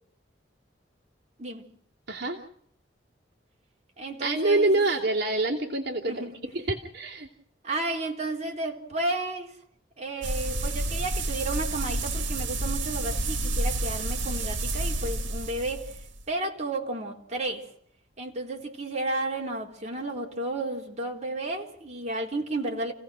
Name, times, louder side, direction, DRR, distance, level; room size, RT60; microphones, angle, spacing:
voice 1, 1.4-1.7 4.0-4.8 6.1-6.4 7.6-9.6 10.0-16.0 16.3-17.7 18.2-22.9, right 2 dB, 35° right, 3.6 m, -32 dB
voice 2, 2.1-2.4 4.2-6.2 6.5-7.3, right 2 dB, 60° right, 2.6 m, -26 dB
sound 1, 10.2-16.2, right 2 dB, 85° right, 1.9 m, -30 dB
29.5 x 17.0 x 6.3 m
head